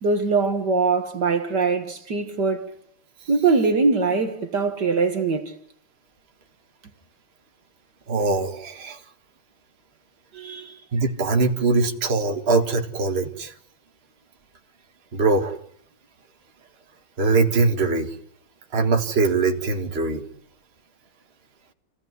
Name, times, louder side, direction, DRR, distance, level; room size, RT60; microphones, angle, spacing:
voice 1, 0.0-2.7 3.3-5.5 10.3-10.8, right 4 dB, 55° right, 2.2 m, -22 dB
voice 2, 8.1-9.0 10.9-13.5 15.1-15.6 17.2-18.1 18.7-20.2, right 3 dB, 30° right, 2.0 m, -22 dB
27.5 x 17.0 x 9.7 m
omnidirectional pair, 2.2 m